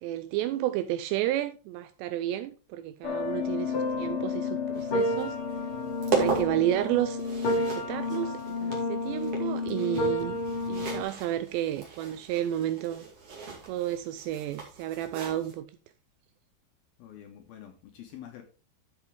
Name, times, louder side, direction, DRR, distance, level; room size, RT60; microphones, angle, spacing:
voice 1, 0.0-5.4 6.2-7.2 7.5-10.4 10.7-13.0 13.7-15.7, right 12 dB, 85° right, 2.5 m, -31 dB
sound 1, 3.0-11.0, left 2 dB, 55° left, 1.5 m, -30 dB
sound 2, 4.7-15.5, right 4 dB, 40° right, 2.6 m, -37 dB
voice 2, 17.0-18.4, left 10 dB, 75° left, 2.4 m, -46 dB
13.0 x 5.9 x 3.4 m
omnidirectional pair, 5.3 m